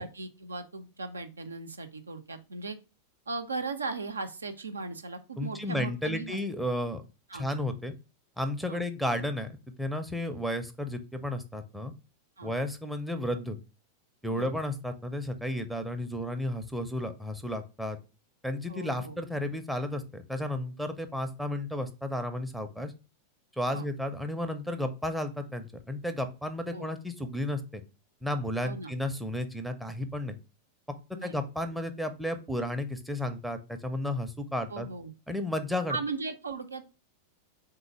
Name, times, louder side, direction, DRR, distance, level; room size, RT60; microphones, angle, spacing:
voice 1, 0.0-2.8 3.3-6.4 7.3-7.5 8.7-8.8 12.4-12.5 14.3-14.5 18.7-19.2 23.7-23.9 26.7-26.9 28.6-29.0 31.1-31.7 34.7-35.1 35.9-36.8, right 3 dB, 75° right, 8 dB, 0.5 m, -37 dB
voice 2, 5.4-7.0 7.3-7.9 8.4-9.5 9.8-11.9 12.4-13.6 14.2-18.0 18.4-22.9 23.6-27.8 28.2-30.4 31.1-34.9 35.3-36.0, left 1 dB, ahead, 9 dB, 0.6 m, -33 dB
3.8 x 3.0 x 4.6 m, 0.30 s
figure-of-eight pair, 90°, 0 cm